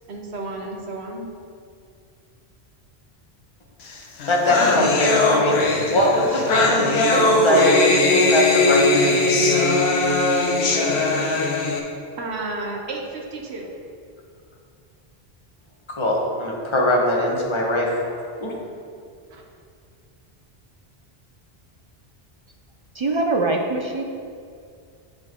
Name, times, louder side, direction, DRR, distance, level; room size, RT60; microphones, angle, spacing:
voice 1, 0.1-1.3 12.2-13.7 19.3-19.4, right 2 dB, 85° right, 0 dB, 1.2 m, -32 dB
sound 1, 3.9-4.0 4.2-11.8, left 2 dB, 85° left, 1.0 m, -20 dB
voice 2, 4.3-9.6 15.9-17.9 18.4-18.6, left 1 dB, 30° left, -2 dB, 1.1 m, -21 dB
voice 3, 22.9-24.0, right 2 dB, 50° right, 2 dB, 0.3 m, -23 dB
7.8 x 5.1 x 3.7 m, 2.3 s
omnidirectional pair, 1.1 m